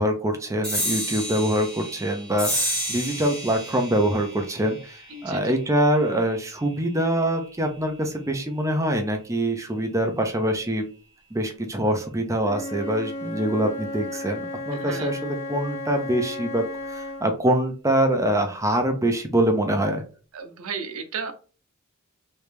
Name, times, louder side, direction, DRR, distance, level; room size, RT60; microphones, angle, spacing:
voice 1, 0.0-10.8 11.3-20.0, right 1 dB, 15° right, 4 dB, 0.5 m, -24 dB
sound 1, 0.6-7.5, equal, 5° left, 1.5 m, -32 dB
voice 2, 5.1-5.5 14.7-15.1 20.3-21.3, right 5 dB, 80° right, 6 dB, 0.7 m, -34 dB
Wind instrument woodwind instrument, 12.4-17.3, left 1 dB, 70° left, 1.2 m, -34 dB
3.2 x 2.7 x 3.3 m, 0.37 s
head